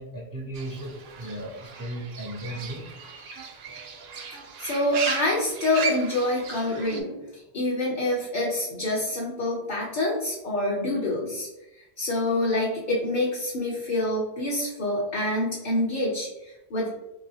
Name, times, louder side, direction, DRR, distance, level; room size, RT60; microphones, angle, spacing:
voice 1, 0.0-2.9, right 1 dB, 30° right, -2 dB, 0.3 m, -36 dB
Fowl / Bird, 0.5-7.0, right 5 dB, 75° right, 0.8 m, -36 dB
voice 2, 4.6-11.5 11.7-16.9, left 1 dB, 55° left, -4 dB, 0.7 m, -27 dB
3.1 x 2.6 x 2.7 m, 0.95 s
omnidirectional pair, 1.0 m